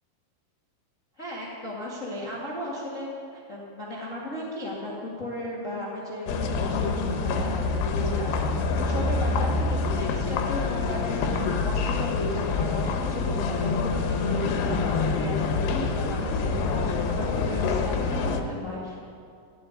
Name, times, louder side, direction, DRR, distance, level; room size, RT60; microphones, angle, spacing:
voice 1, 1.2-8.3 8.7-18.9, left 1 dB, 35° left, -5 dB, 1.2 m, -35 dB
sound 1, 6.3-18.4, left 4 dB, 80° left, 3.0 m, -26 dB
14.5 x 7.8 x 9.4 m, 2.4 s
omnidirectional pair, 4.8 m